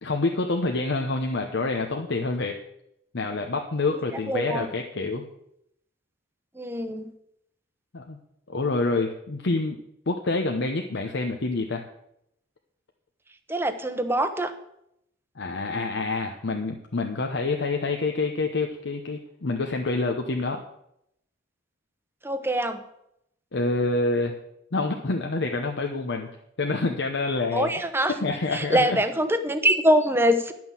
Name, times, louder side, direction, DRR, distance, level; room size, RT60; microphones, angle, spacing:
voice 1, 0.0-2.6 3.1-5.3 7.9-8.2 8.5-9.8 10.1-11.8 15.4-20.6 23.5-24.4 24.7-26.3 26.6-27.7 28.2-29.0, left 3 dB, 65° left, 3 dB, 0.8 m, -27 dB
voice 2, 4.3-4.7 6.6-7.1 13.5-14.5 22.2-22.8 27.5-28.1 28.5-30.5, right 1 dB, 10° right, 9 dB, 0.8 m, -24 dB
11.0 x 6.1 x 7.3 m, 0.79 s
head